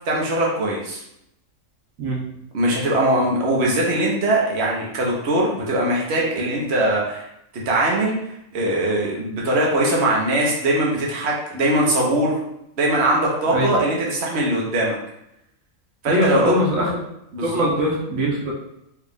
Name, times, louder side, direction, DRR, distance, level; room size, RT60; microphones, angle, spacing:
voice 1, 0.1-1.0 2.5-7.2 7.7-8.2 8.5-12.4 12.8-15.0 16.0-16.5 17.3-17.6, right 1 dB, 55° right, -3 dB, 1.2 m, -21 dB
voice 2, 16.0-16.9 17.4-18.5, equal, 80° right, -3 dB, 1.3 m, -21 dB
4.7 x 2.4 x 3.5 m, 0.81 s
omnidirectional pair, 1.4 m